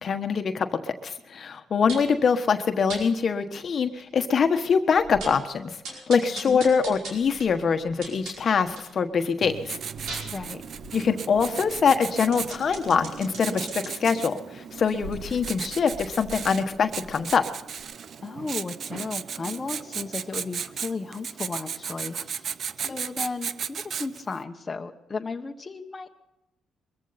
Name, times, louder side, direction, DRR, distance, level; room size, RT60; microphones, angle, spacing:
voice 1, 0.0-5.8 6.1-9.8 10.9-17.4, left 6 dB, 50° left, 7 dB, 1.3 m, -24 dB
sound 1, 1.9-2.2 2.9-3.0 3.6-3.7 4.0-4.1 4.5-4.6 4.9-5.5 5.8-8.9 9.3-14.1 14.7-17.4 17.8-17.9, right 2 dB, 85° right, 5.0 m, -41 dB
Writing, 9.4-24.4, right 7 dB, 55° right, 0.6 m, -36 dB
voice 2, 10.2-10.6 18.2-22.5 22.8-26.1, left 4 dB, 30° left, 3 dB, 1.3 m, -34 dB
22.5 x 14.5 x 4.2 m, 0.90 s
cardioid pair, 90°, 0 cm